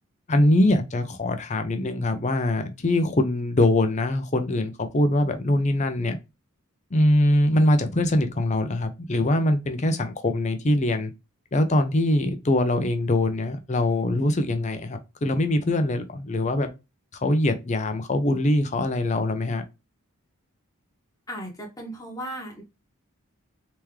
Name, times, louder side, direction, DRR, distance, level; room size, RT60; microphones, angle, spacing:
voice 1, 0.3-6.2 6.9-11.1 11.5-16.7 17.2-19.6, left 1 dB, 30° left, 0.5 m, -23 dB
voice 2, 21.3-22.6, equal, 15° left, 1.2 m, -36 dB
3.5 x 3.0 x 3.2 m
head